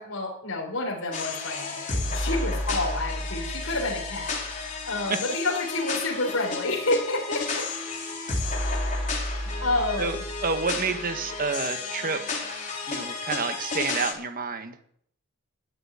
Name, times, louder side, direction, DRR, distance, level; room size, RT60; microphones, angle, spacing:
voice 1, 0.0-4.3 4.6-7.7 8.0-8.1 9.6-10.2, left 2 dB, 85° left, -1 dB, 4.0 m, -29 dB
sound 1, 1.1-14.1, left 2 dB, 40° left, 3.9 m, -31 dB
voice 2, 10.0-12.2 12.9-14.8, right 4 dB, 45° right, 8 dB, 1.4 m, -29 dB
13.0 x 8.0 x 9.9 m, 0.67 s
head